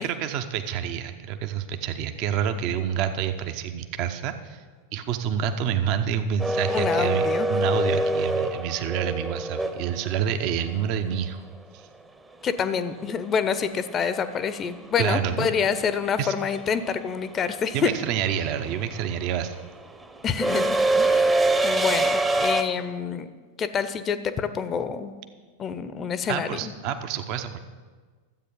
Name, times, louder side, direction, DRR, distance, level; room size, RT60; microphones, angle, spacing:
voice 1, 0.0-4.6 4.9-11.4 11.7-11.9 15.0-15.5 16.2-16.3 17.7-19.5 26.3-27.6, right 8 dB, 40° right, 8 dB, 0.7 m, -28 dB
sound 1, 6.4-10.5 12.9-13.0 14.3-14.6 14.8-22.6, right 2 dB, 10° right, 0.8 m, -25 dB
voice 2, 6.7-7.5 12.4-17.9 20.2-23.3 23.6-25.1 25.6-26.7, left 6 dB, 25° left, 12 dB, 0.6 m, -27 dB
12.5 x 8.2 x 5.4 m, 1.5 s
figure-of-eight pair, 90°, 0 cm